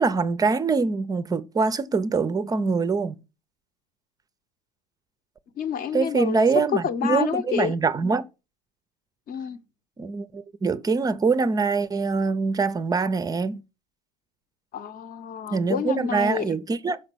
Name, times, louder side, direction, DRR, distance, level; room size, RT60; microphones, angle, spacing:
voice 1, 0.0-3.2 5.9-8.3 10.0-13.6 15.5-17.0, right 4 dB, 20° right, 0.4 m, -24 dB
voice 2, 5.6-6.4 6.8-7.7 9.3-9.6 14.7-16.5, left 7 dB, 45° left, 0.8 m, -29 dB
6.0 x 3.9 x 6.1 m
supercardioid pair, 100°, 20 cm